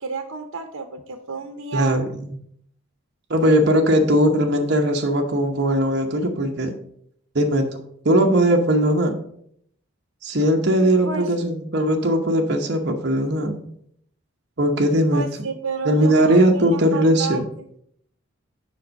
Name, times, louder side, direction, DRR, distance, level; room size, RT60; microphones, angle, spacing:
voice 1, 0.0-2.0 10.8-11.3 15.1-17.7, right 5 dB, 85° right, 5 dB, 0.8 m, -31 dB
voice 2, 1.7-2.4 3.3-6.7 7.3-7.7 8.0-9.1 10.2-13.6 14.6-15.2 15.9-17.4, right 1 dB, 55° right, 1 dB, 1.0 m, -19 dB
7.4 x 5.3 x 5.2 m, 0.69 s
head